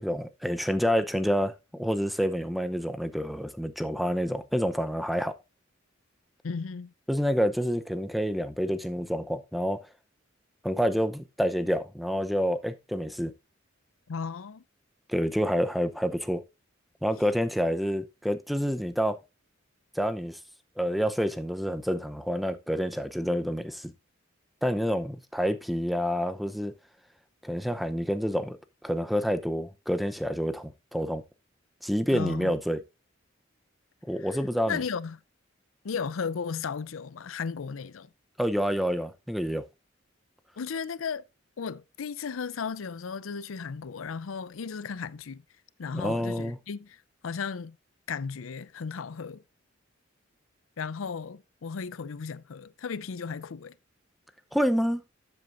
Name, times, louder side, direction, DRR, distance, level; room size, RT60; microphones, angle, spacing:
voice 1, 0.0-5.4 7.1-9.8 10.6-13.3 15.1-16.4 17.0-19.2 19.9-20.4 20.8-23.9 24.6-26.7 27.4-28.6 28.8-31.2 31.8-32.8 34.0-34.8 38.4-39.6 45.9-46.6 54.5-55.0, equal, ahead, 0.7 m, -28 dB
voice 2, 6.4-6.9 14.1-14.6 32.1-32.5 34.2-34.4 34.7-35.2 35.8-38.1 40.6-41.2 41.6-45.4 45.8-47.8 48.1-49.4 50.8-53.7, left 5 dB, 85° left, 0.5 m, -35 dB
12.5 x 7.8 x 2.6 m
head